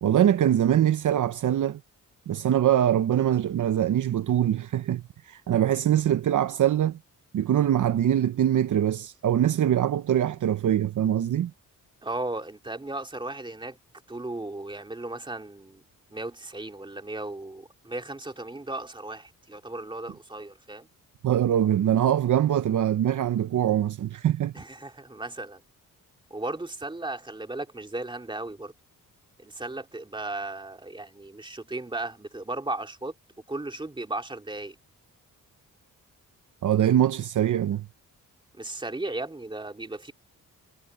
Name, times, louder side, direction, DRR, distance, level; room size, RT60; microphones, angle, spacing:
voice 1, 0.0-1.8 2.3-7.0 7.3-11.5 21.2-24.5 36.6-37.9, right 10 dB, 60° right, 0.8 m, -23 dB
voice 2, 12.0-13.8 14.1-15.8 16.1-20.9 24.5-25.6 26.3-28.7 29.4-33.1 33.5-34.7 38.6-40.1, right 2 dB, 15° right, 2.5 m, -36 dB
cardioid pair, 100°, 34 cm